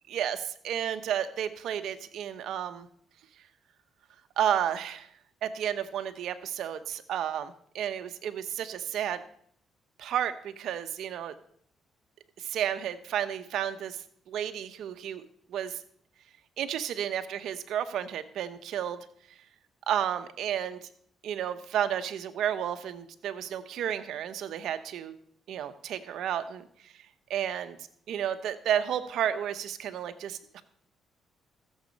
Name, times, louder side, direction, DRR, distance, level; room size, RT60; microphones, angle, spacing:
voice 1, 0.1-2.9 4.4-5.1 5.4-9.2 10.0-11.4 12.4-14.0 14.3-15.2 15.5-15.8 16.6-19.0 19.9-20.8 21.2-25.1 25.5-26.6 27.3-27.8 28.1-30.6, right 10 dB, 75° right, 10 dB, 1.0 m, -32 dB
15.0 x 7.4 x 5.3 m, 0.63 s
cardioid pair, 90°, 0 cm